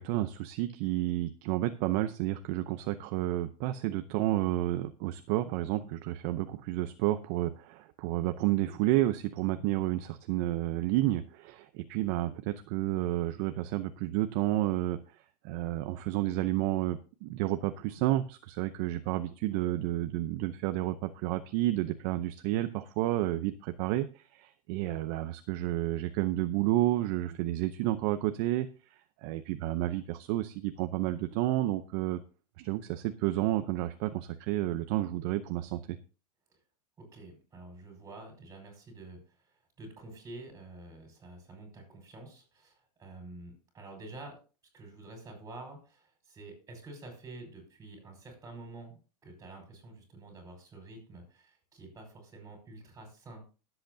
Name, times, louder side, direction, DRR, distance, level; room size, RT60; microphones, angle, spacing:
voice 1, 0.0-15.0 15.4-28.7 29.2-32.2 32.6-36.0, right 15 dB, 40° right, 10 dB, 0.7 m, -31 dB
voice 2, 37.0-44.4 44.7-48.9 49.2-53.4, right 2 dB, 15° right, 3 dB, 5.1 m, -48 dB
21.0 x 7.9 x 2.7 m, 0.34 s
supercardioid pair, 145°, 20 cm